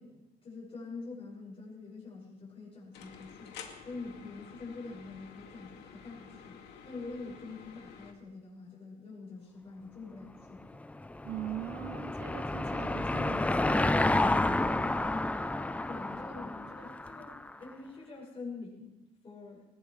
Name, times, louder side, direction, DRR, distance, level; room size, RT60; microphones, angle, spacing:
voice 1, 0.0-3.6 3.8-6.6 6.8-10.6 15.9-19.6, left 3 dB, 35° left, 6.5 m, -45 dB
sound 1, 2.9-8.1, left 6 dB, 80° left, 2.4 m, -50 dB
Car passing by / Engine, 10.7-17.5, left 2 dB, 10° left, 0.5 m, -30 dB
voice 2, 11.2-15.1, right 13 dB, 80° right, 0.7 m, -43 dB
20.5 x 19.5 x 3.3 m
cardioid pair, 110°, 17 cm